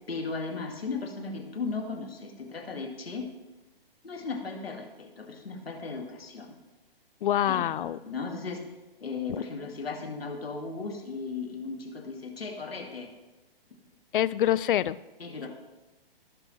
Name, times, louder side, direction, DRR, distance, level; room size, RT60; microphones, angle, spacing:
voice 1, 0.1-3.3 4.0-6.5 7.4-8.6 9.0-13.1 15.2-15.5, left 4 dB, 85° left, 3 dB, 2.0 m, -36 dB
voice 2, 7.2-8.0 9.3-9.4 14.1-15.0, left 11 dB, 60° left, 19 dB, 0.4 m, -25 dB
16.0 x 6.1 x 3.2 m, 1.1 s
hypercardioid pair, 135°, 29 cm